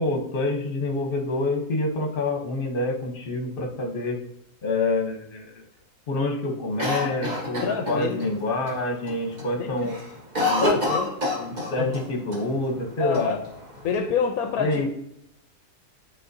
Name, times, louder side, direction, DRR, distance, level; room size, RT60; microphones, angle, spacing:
voice 1, 0.0-4.2 4.6-5.6 6.1-9.9 10.4-10.8 11.3-13.3 14.6-14.9, left 2 dB, 40° left, 2 dB, 1.0 m, -27 dB
Cough, 6.8-8.3 8.7-8.8 9.1-9.5 9.8-12.0 12.3-12.4 13.1-13.9, left 1 dB, 30° right, 1.3 m, -27 dB
voice 2, 7.6-8.3 9.6-9.7 10.6-11.1 11.8-11.9 13.0-13.4 13.8-14.9, left 6 dB, 75° left, 5 dB, 1.0 m, -26 dB
9.3 x 3.8 x 2.7 m, 0.79 s
omnidirectional pair, 1.6 m